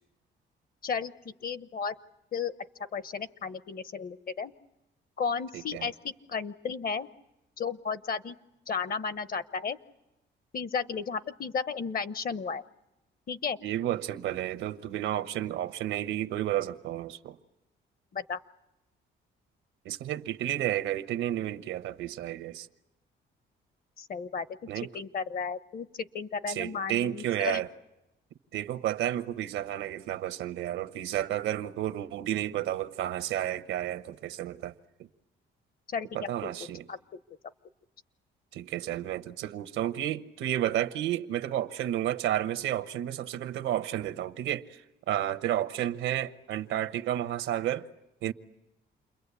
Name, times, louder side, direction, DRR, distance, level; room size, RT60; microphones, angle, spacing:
voice 1, 0.8-1.9 2.3-2.5 2.9-4.5 5.2-7.1 7.6-8.3 8.7-9.8 10.5-12.6 13.3-13.6 18.1-18.4 24.0-24.6 24.9-27.6 35.9-36.3 36.9-37.2, left 5 dB, 45° left, 1.0 m, -34 dB
voice 2, 5.5-5.9 13.6-17.4 19.8-22.7 24.7-24.9 26.5-27.7 28.5-34.7 36.1-36.8 38.5-44.8 45.1-47.9 48.2-48.3, right 12 dB, 85° right, 1.0 m, -31 dB
29.0 x 22.0 x 8.4 m
cardioid pair, 90°, 20 cm